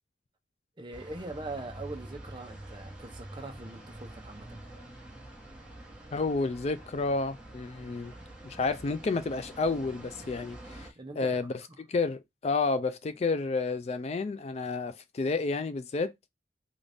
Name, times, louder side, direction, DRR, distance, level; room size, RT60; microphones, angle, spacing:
voice 1, 0.8-4.6 10.9-11.4 11.7-11.8, right 2 dB, 25° right, 0.7 m, -42 dB
sound 1, 0.9-10.9, right 1 dB, 5° right, 1.2 m, -47 dB
voice 2, 6.1-8.1 8.4-10.9 11.2-11.5 11.9-16.1, left 3 dB, 35° left, 0.3 m, -30 dB
3.9 x 2.5 x 3.3 m
head